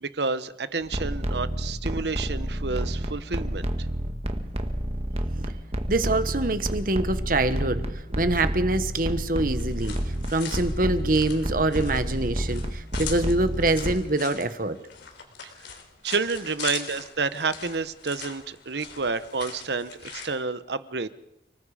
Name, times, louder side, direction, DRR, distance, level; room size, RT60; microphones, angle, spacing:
voice 1, 0.0-3.7 15.4-15.5 16.0-21.1, right 4 dB, 65° right, 13 dB, 1.0 m, -29 dB
sound 1, 0.8-14.0, equal, 35° right, 1.5 m, -30 dB
voice 2, 5.9-7.8 8.2-10.0 10.3-14.8, right 2 dB, 50° right, 11 dB, 1.4 m, -25 dB
sound 2, 9.5-20.3, left 7 dB, 80° left, 3.8 m, -41 dB
29.5 x 19.5 x 5.0 m, 0.88 s
head